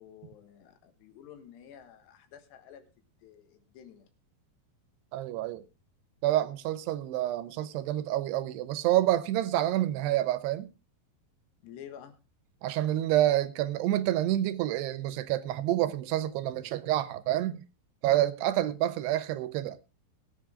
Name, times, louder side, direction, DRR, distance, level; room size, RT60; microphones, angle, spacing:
voice 1, 0.0-2.9 3.2-4.1 11.6-12.2, left 9 dB, 85° left, 3.6 m, -50 dB
voice 2, 5.1-5.6 6.2-10.7 12.6-17.6 18.0-19.8, right 13 dB, 85° right, 3.0 m, -28 dB
21.0 x 7.7 x 3.7 m
omnidirectional pair, 4.7 m